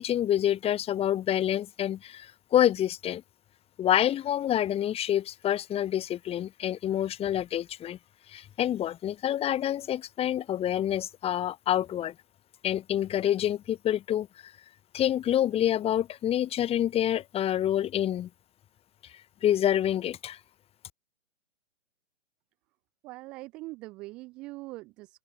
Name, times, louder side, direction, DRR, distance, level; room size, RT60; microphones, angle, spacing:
voice 1, 0.0-3.2 3.8-8.0 8.3-12.1 12.6-14.5 14.9-18.3 19.4-20.4, left 11 dB, 15° left, 1.8 m, -27 dB
voice 2, 23.0-25.2, right 21 dB, 5° right, 0.3 m, -42 dB
open air
hypercardioid pair, 130°, 37 cm